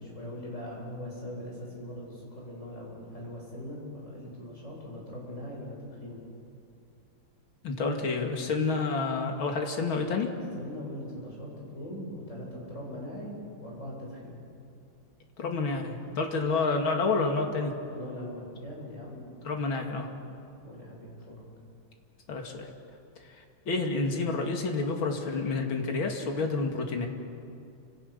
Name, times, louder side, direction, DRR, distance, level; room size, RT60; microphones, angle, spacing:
voice 1, 0.0-6.2 10.5-13.4 13.6-14.4 17.9-19.3 20.6-21.4, left 1 dB, 35° left, -3 dB, 7.9 m, -41 dB
voice 2, 7.6-10.3 15.4-17.7 19.4-20.1 22.3-22.7 23.2-27.1, left 3 dB, 70° left, 2 dB, 3.1 m, -29 dB
29.5 x 27.0 x 6.8 m, 2.5 s
omnidirectional pair, 2.3 m